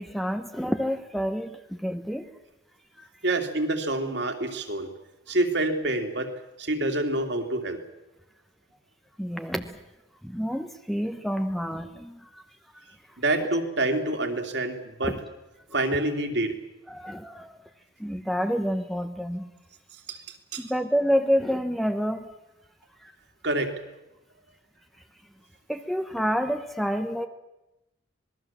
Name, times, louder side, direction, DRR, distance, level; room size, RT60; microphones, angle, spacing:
voice 1, 0.0-2.3 3.0-3.1 9.2-9.8 10.2-12.4 15.0-15.1 16.9-17.6 18.0-19.5 20.6-22.3 23.0-23.1 25.7-27.3, equal, ahead, 7 dB, 1.0 m, -28 dB
voice 2, 3.2-4.9 5.3-6.3 6.6-7.8 13.2-15.1 15.7-16.6 20.1-20.2 20.5-20.7 23.4-23.8, right 2 dB, 60° right, 4 dB, 2.8 m, -27 dB
26.5 x 20.5 x 7.3 m, 0.95 s
head